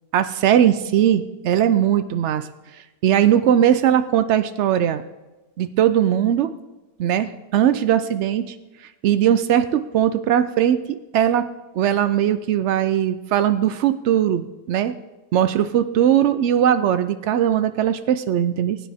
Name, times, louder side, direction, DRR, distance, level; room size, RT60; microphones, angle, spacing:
voice 1, 0.1-2.5 3.0-5.0 5.6-6.5 7.0-8.5 9.0-10.8 11.1-11.5 11.7-14.9 15.3-18.8, right 10 dB, 80° right, 11 dB, 0.6 m, -19 dB
20.0 x 9.6 x 3.5 m, 1.1 s
omnidirectional pair, 1.8 m